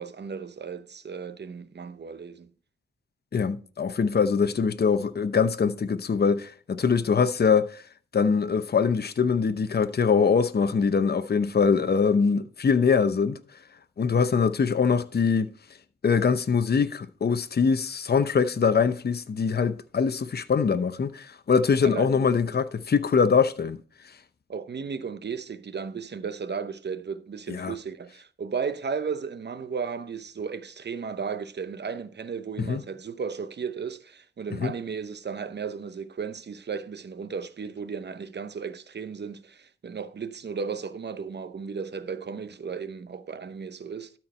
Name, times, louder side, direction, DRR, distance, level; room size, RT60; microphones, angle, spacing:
voice 1, 0.0-2.5 21.8-22.6 24.5-44.1, right 6 dB, 60° right, 0.8 m, -35 dB
voice 2, 3.3-7.8 8.1-13.4 14.0-15.5 16.0-23.8 27.5-27.7 32.7-32.8 34.6-34.7, left 5 dB, 55° left, 0.8 m, -23 dB
12.5 x 4.6 x 4.3 m
cardioid pair, 50°, 20 cm